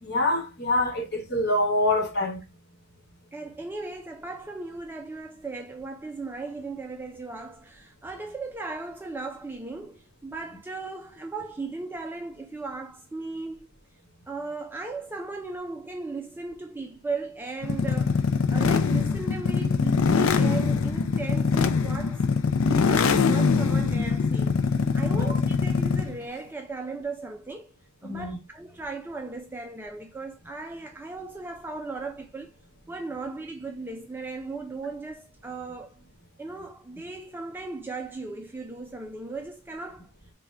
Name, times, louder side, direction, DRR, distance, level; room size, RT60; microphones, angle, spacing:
voice 1, 0.0-2.4 25.1-25.3 28.0-28.4, left 1 dB, 50° left, 1.2 m, -26 dB
voice 2, 3.3-13.7 14.3-22.2 22.6-27.7 28.0-32.5 32.9-36.0 36.4-40.1, right 3 dB, 10° right, 0.3 m, -37 dB
sound 1, 17.6-26.2, left 5 dB, 65° left, 0.4 m, -23 dB
3.6 x 2.2 x 4.2 m
head